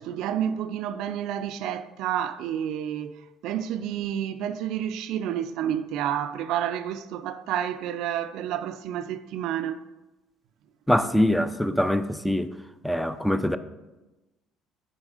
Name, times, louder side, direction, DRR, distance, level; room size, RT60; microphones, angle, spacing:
voice 1, 0.0-9.8, right 10 dB, 75° right, 0.3 m, -30 dB
voice 2, 10.9-12.5 12.8-13.6, left 1 dB, ahead, 0.4 m, -23 dB
6.2 x 4.2 x 4.8 m
supercardioid pair, 80°, 0 cm